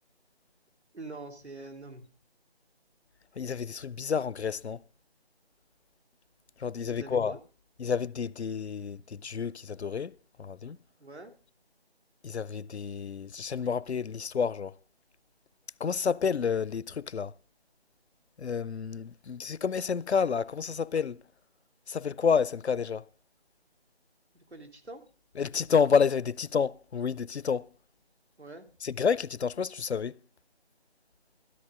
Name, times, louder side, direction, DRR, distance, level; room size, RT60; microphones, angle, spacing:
voice 1, 0.9-2.1 6.9-7.4 11.0-11.3 24.3-25.0 28.4-28.7, right 2 dB, 85° right, 2.9 m, -44 dB
voice 2, 3.4-4.8 6.6-7.4 7.8-10.8 12.2-14.8 15.8-17.3 18.4-21.2 21.9-23.1 25.4-27.7 28.8-30.2, left 6 dB, 85° left, 0.5 m, -29 dB
13.0 x 13.0 x 3.7 m
figure-of-eight pair, 175°, 32 cm